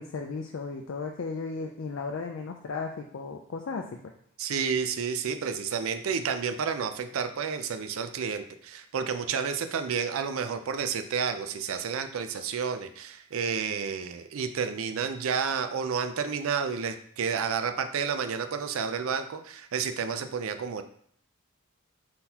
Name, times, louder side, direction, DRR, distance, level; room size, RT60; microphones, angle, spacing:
voice 1, 0.0-3.9, left 4 dB, 60° left, 2 dB, 0.4 m, -35 dB
voice 2, 4.4-20.8, right 6 dB, 75° right, 8 dB, 0.4 m, -30 dB
4.1 x 3.8 x 2.8 m, 0.63 s
head